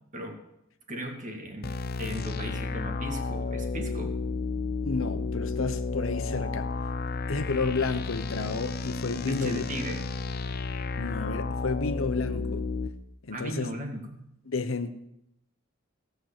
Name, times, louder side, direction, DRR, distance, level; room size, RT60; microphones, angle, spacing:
voice 1, 0.9-4.1 9.2-10.0 13.3-14.2, equal, 40° right, 2.0 m, -37 dB
sound 1, 1.6-12.9, left 4 dB, 50° left, 0.7 m, -32 dB
voice 2, 4.8-6.7 7.3-9.7 11.0-12.6 13.2-13.7 14.5-14.9, left 4 dB, 75° left, 0.9 m, -31 dB
16.0 x 6.4 x 7.5 m
head